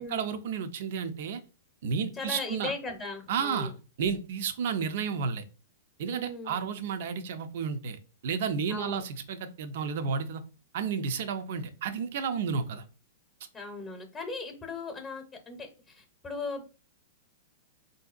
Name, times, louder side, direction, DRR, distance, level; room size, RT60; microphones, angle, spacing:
voice 1, 0.0-1.4 1.8-2.7 3.3-3.7 4.0-5.4 6.0-10.4 10.7-12.8, right 6 dB, 65° right, 9 dB, 0.4 m, -32 dB
voice 2, 2.1-3.7 6.1-6.7 8.7-9.0 13.5-16.6, left 3 dB, 20° left, 2 dB, 0.7 m, -38 dB
3.5 x 2.6 x 2.4 m, 0.34 s
hypercardioid pair, 125°, 0 cm